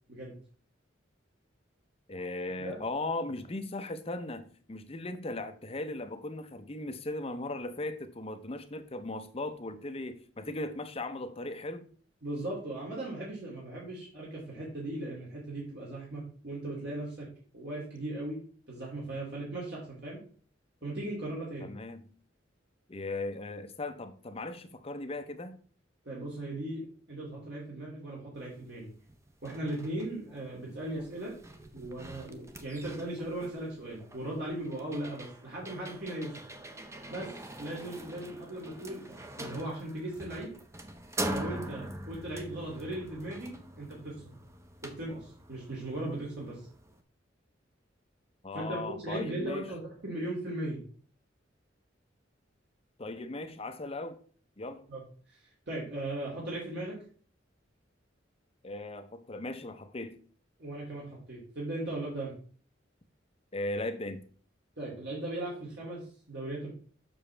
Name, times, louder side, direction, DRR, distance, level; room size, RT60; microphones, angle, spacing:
voice 1, 2.1-11.9 21.6-22.1 22.9-25.6 48.4-49.6 53.0-54.2 54.6-54.9 58.6-60.2 63.5-64.2, left 2 dB, 30° left, 9 dB, 0.7 m, -37 dB
voice 2, 12.2-17.3 17.5-18.4 18.7-20.2 20.8-21.7 26.0-26.8 27.1-28.9 29.4-31.3 31.7-36.3 37.1-37.3 37.6-40.5 41.3-44.2 44.8-46.6 48.5-50.8 54.9-55.0 55.7-57.0 60.6-62.3 64.8-66.7, right 1 dB, 60° right, -5 dB, 2.5 m, -38 dB
sound 1, 28.6-28.7 29.1-47.0, right 1 dB, 15° right, 0.7 m, -43 dB
7.0 x 6.2 x 3.3 m, 0.43 s
head